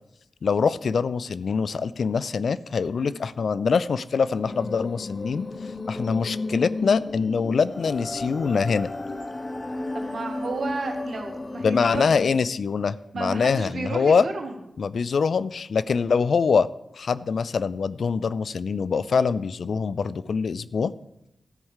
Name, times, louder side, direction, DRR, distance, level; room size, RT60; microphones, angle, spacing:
voice 1, 0.4-5.5 5.9-8.9 11.6-14.2 14.8-16.7 17.0-20.9, left 5 dB, 80° left, 17 dB, 0.4 m, -24 dB
sound 1, 4.4-12.4, left 2 dB, 35° left, 0.8 m, -33 dB
voice 2, 9.9-12.0 13.1-14.5, right 3 dB, 75° right, 3 dB, 1.8 m, -32 dB
13.0 x 4.7 x 7.3 m, 0.84 s
cardioid pair, 65°, 0 cm